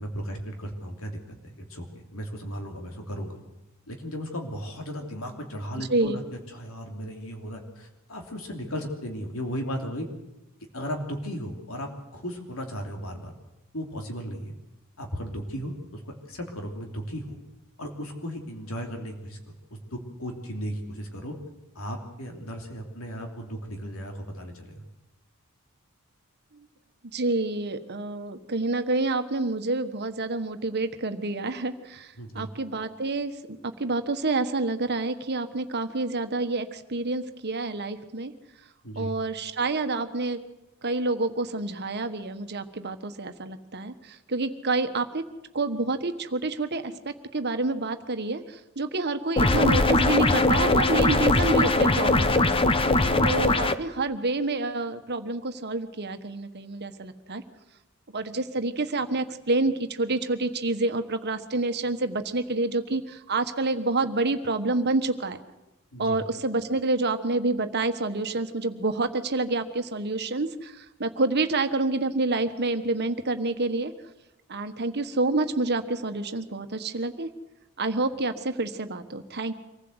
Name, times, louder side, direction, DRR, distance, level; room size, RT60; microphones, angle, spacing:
voice 1, 0.0-1.8 2.1-3.4 3.9-10.1 10.7-13.3 13.7-14.5 15.0-17.4 17.8-19.4 19.7-21.3 21.7-24.8 32.2-32.5 38.8-39.1 52.9-53.3 65.9-66.2, equal, 70° left, 3 dB, 3.1 m, -36 dB
voice 2, 5.8-6.2 27.1-33.3 33.8-38.3 38.9-40.4 40.8-45.2 45.5-52.5 53.2-57.4 58.1-65.4 66.0-73.9 74.5-77.3 77.8-79.5, right 3 dB, 50° right, 8 dB, 1.4 m, -28 dB
sound 1, 49.4-53.7, left 2 dB, 25° left, 0.9 m, -21 dB
24.5 x 15.5 x 8.1 m, 0.95 s
head